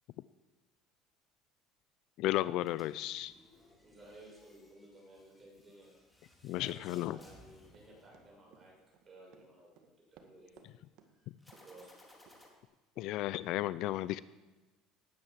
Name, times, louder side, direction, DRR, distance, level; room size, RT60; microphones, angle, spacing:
voice 1, 2.2-3.3 6.4-7.2 13.0-14.2, left 15 dB, 60° left, 18 dB, 0.5 m, -34 dB
sound 1, 2.6-8.7 11.4-12.5, left 1 dB, 5° left, 3.3 m, -62 dB
voice 2, 3.8-6.0 6.6-8.8 9.1-9.7 10.1-10.8 11.1-11.9, right 1 dB, 20° right, -3 dB, 7.1 m, -56 dB
Run, 7.7-10.7 11.0-11.1 11.5-11.8 12.3-12.4 13.0-13.1, right 8 dB, 65° right, 2.0 m, -62 dB
18.5 x 9.6 x 7.6 m, 1.1 s
cardioid pair, 135°, 0 cm